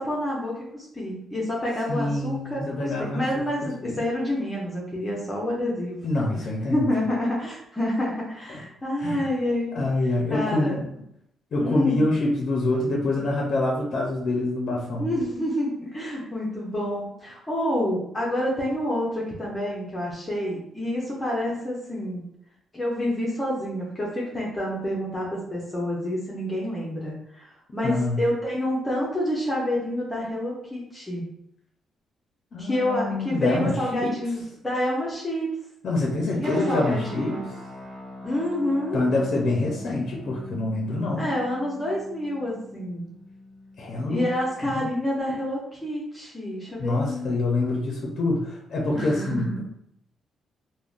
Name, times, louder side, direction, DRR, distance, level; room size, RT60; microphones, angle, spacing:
voice 1, 0.0-6.0 6.7-9.8 10.3-10.7 11.6-12.1 15.0-22.2 22.7-31.2 32.6-35.5 36.3-37.4 38.2-39.1 41.2-43.0 44.1-47.4 48.9-49.6, left 1 dB, 15° left, -5 dB, 0.7 m, -28 dB
voice 2, 1.9-4.0 6.0-6.8 9.0-9.3 9.7-10.8 11.5-15.1 27.8-28.2 32.5-34.1 35.8-37.4 38.9-41.3 43.8-44.3 44.6-44.8 46.8-49.6, left 2 dB, 55° left, -2 dB, 0.5 m, -26 dB
sound 1, 36.4-44.7, left 1 dB, 55° right, 0.6 m, -43 dB
3.5 x 2.1 x 2.4 m, 0.74 s
cardioid pair, 105°, 0 cm